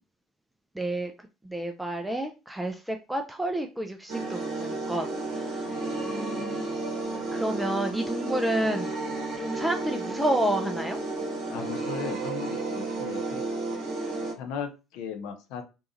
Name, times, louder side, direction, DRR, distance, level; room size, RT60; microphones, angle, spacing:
voice 1, 0.8-1.1 1.5-5.1 5.3-5.6 6.1-6.7 7.3-8.9 9.4-11.0, right 1 dB, 5° right, 0.4 m, -30 dB
ethereal-remix, 4.1-14.3, right 2 dB, 50° right, 0.8 m, -32 dB
voice 2, 11.5-13.4 14.4-15.6, left 6 dB, 60° left, 0.5 m, -37 dB
2.7 x 2.3 x 2.6 m
figure-of-eight pair, 60°, 0 cm